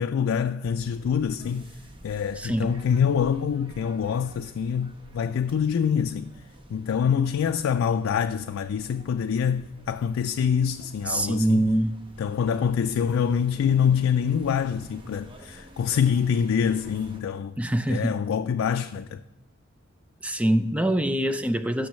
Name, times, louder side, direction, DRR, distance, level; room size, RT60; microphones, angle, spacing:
voice 1, 0.0-1.7 2.0-6.3 6.7-11.7 12.2-17.5 17.9-19.2, left 7 dB, 90° left, 0.3 m, -25 dB
sound 1, 0.6-17.2, equal, 25° right, 0.9 m, -50 dB
voice 2, 2.4-2.8 11.1-12.0 17.6-18.2 20.2-21.9, right 1 dB, 5° right, 0.4 m, -24 dB
16.0 x 6.3 x 3.1 m
head